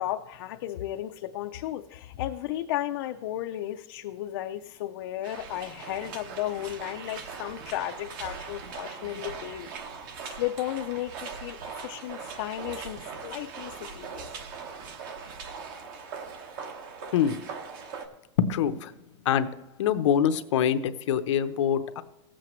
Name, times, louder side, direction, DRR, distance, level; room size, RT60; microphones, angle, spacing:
voice 1, 0.0-9.7 10.3-14.3, left 13 dB, 50° left, 5 dB, 0.4 m, -34 dB
sound 1, 5.2-18.1, right 5 dB, 50° right, 1.1 m, -40 dB
voice 2, 18.4-18.9 19.2-19.5 19.8-22.0, left 9 dB, 85° left, 10 dB, 0.8 m, -24 dB
18.0 x 7.6 x 3.1 m, 0.96 s
supercardioid pair, 175°, 15 cm